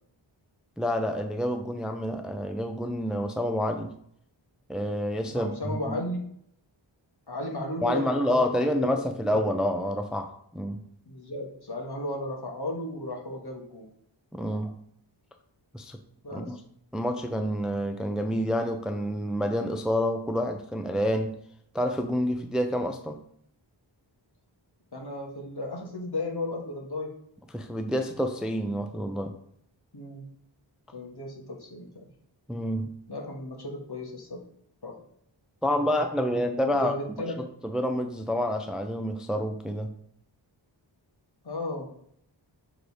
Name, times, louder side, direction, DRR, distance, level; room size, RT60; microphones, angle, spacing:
voice 1, 0.8-3.9 4.7-6.0 7.8-10.8 14.3-14.8 15.7-16.0 16.3-16.6 16.9-21.3 21.7-23.2 27.5-29.3 32.5-32.9 35.6-40.0, equal, ahead, 6 dB, 0.5 m, -28 dB
voice 2, 5.3-6.2 7.3-8.4 8.7-9.4 11.1-13.9 16.2-16.6 24.9-27.1 29.9-30.2 30.9-32.0 33.1-34.4 34.8-34.9 36.7-37.4 41.4-41.9, left 1 dB, 55° left, 0 dB, 1.8 m, -35 dB
6.6 x 3.9 x 4.9 m, 0.68 s
wide cardioid pair, 75°, 47 cm